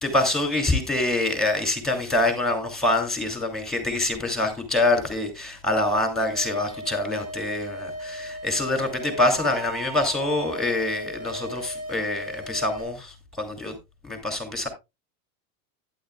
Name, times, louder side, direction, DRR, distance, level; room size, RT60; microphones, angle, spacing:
voice 1, 0.0-13.7 14.0-14.7, left 2 dB, ahead, 2.9 m, -25 dB
sound 1, 6.2-12.8, right 1 dB, 80° right, 4.6 m, -36 dB
11.5 x 9.9 x 2.3 m
supercardioid pair, 140°, 42 cm